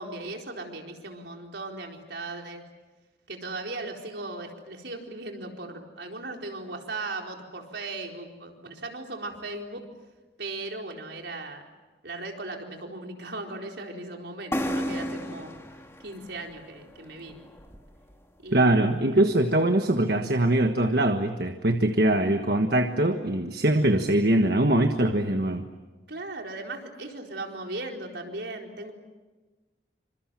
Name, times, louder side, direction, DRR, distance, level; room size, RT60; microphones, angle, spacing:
voice 1, 0.0-2.6 3.3-9.8 10.4-11.6 12.0-15.6 16.0-17.4 18.4-18.9 22.2-22.5 26.1-28.9, right 2 dB, 75° right, 2 dB, 4.3 m, -37 dB
sound 1, 14.5-18.1, equal, 15° left, 2.1 m, -34 dB
voice 2, 18.5-25.6, right 1 dB, 60° right, 6 dB, 1.4 m, -22 dB
28.5 x 26.0 x 7.6 m, 1.2 s
head